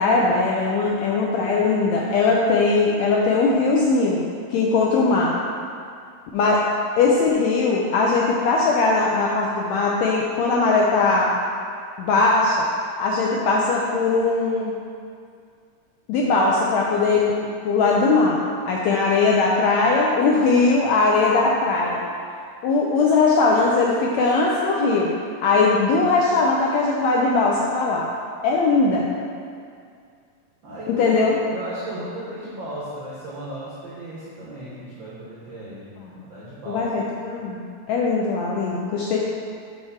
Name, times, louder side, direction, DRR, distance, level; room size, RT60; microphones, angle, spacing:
voice 1, 0.0-4.2 4.5-5.3 6.3-6.6 7.0-11.3 12.0-12.6 13.0-14.7 16.1-18.4 18.7-22.0 22.6-25.1 25.4-28.1 28.4-29.1 30.9-31.4 36.0-36.1 36.7-37.6 37.9-39.2, left 3 dB, 80° left, -3 dB, 1.6 m, -20 dB
voice 2, 30.6-31.2 31.5-35.9 36.1-36.9, right 1 dB, 85° right, -8 dB, 1.0 m, -35 dB
8.2 x 3.4 x 5.8 m, 2.3 s
omnidirectional pair, 3.8 m